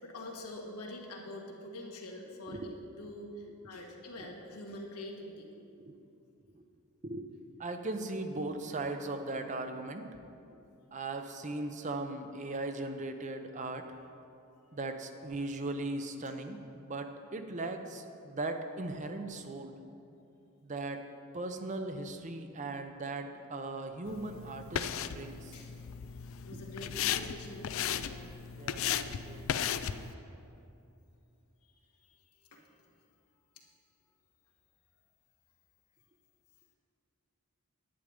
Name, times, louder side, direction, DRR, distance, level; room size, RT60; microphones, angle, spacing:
voice 1, 0.0-5.5 25.5-25.7 26.4-28.2 32.1-32.2 32.5-32.6, left 1 dB, 85° left, 0 dB, 1.7 m, -45 dB
voice 2, 2.5-2.8 3.7-3.8 4.2-4.3 5.6-6.0 6.5-6.6 7.0-7.3 7.6-10.2 10.5-10.6 10.9-13.9 14.7-19.8 20.6-21.0 21.3-25.6 26.5-26.6 28.6-29.5, right 2 dB, 35° right, 7 dB, 0.6 m, -38 dB
sound 1, 24.1-30.1, left 9 dB, 60° left, 0.4 m, -36 dB
10.5 x 9.2 x 5.1 m, 2.7 s
head